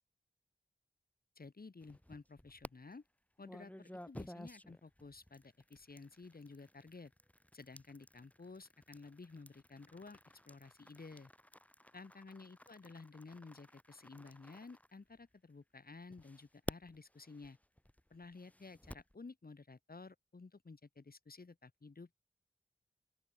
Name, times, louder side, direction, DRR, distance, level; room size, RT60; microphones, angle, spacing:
voice 1, 1.4-3.0 3.4-7.1 7.5-11.3 11.9-17.6 18.1-22.2, left 3 dB, 55° left, 1.7 m, -53 dB
sound 1, 1.8-2.7 3.4-15.5 16.1-19.1, equal, 10° left, 2.2 m, -53 dB
open air
wide cardioid pair, 60°, 18 cm